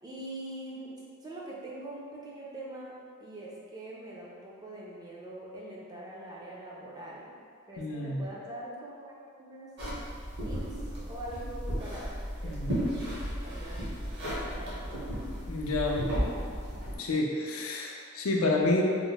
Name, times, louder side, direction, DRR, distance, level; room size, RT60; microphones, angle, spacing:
voice 1, 0.0-7.3 7.7-9.7 10.4-10.6 11.1-12.1 12.4-13.8 14.3-15.1, right 1 dB, 20° right, -5 dB, 0.4 m, -43 dB
voice 2, 7.8-8.2 12.4-12.8 15.5-16.1 17.0-18.8, left 2 dB, 65° left, 0 dB, 0.4 m, -29 dB
sound 1, 9.8-17.0, equal, 50° right, 0.8 m, -34 dB
3.0 x 2.0 x 3.9 m, 2.1 s
head